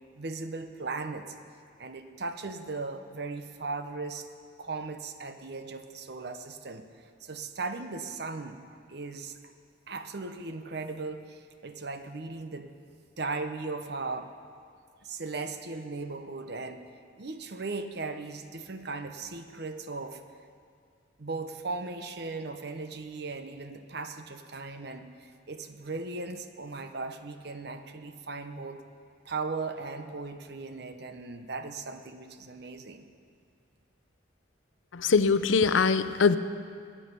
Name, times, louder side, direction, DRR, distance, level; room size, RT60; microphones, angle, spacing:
voice 1, 0.1-1.3 1.8-4.3 4.6-8.6 8.9-9.4 9.9-12.7 13.2-14.3 15.0-16.8 17.2-20.2 21.2-28.8 29.2-33.1, right 3 dB, 55° right, 8 dB, 0.8 m, -37 dB
voice 2, 34.9-36.4, left 5 dB, 80° left, 13 dB, 0.6 m, -22 dB
20.5 x 10.0 x 5.4 m, 2.2 s
head